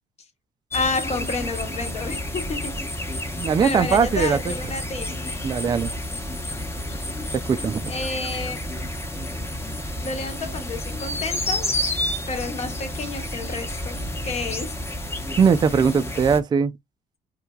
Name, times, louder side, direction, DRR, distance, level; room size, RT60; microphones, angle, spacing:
voice 1, 0.7-2.8 3.6-5.2 7.9-8.6 10.0-11.7 12.3-14.8, left 3 dB, 40° left, 1.1 m, -30 dB
sound 1, 0.7-16.4, left 1 dB, 15° left, 1.0 m, -30 dB
voice 2, 3.4-4.5 5.4-5.9 7.3-7.8 15.4-16.7, right 6 dB, 25° right, 0.4 m, -20 dB
3.2 x 3.2 x 2.3 m
cardioid pair, 110°, 17 cm